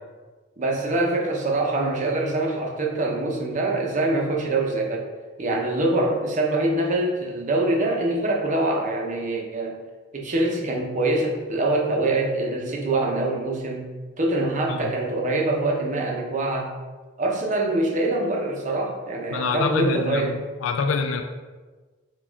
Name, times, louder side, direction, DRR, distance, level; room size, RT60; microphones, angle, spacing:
voice 1, 0.6-5.1 5.4-9.8 10.1-13.9 14.2-16.7 17.2-20.4, right 2 dB, 40° right, -1 dB, 0.7 m, -24 dB
voice 2, 19.3-20.3 20.6-21.2, left 5 dB, 80° left, 6 dB, 0.3 m, -25 dB
4.1 x 2.4 x 4.4 m, 1.3 s
head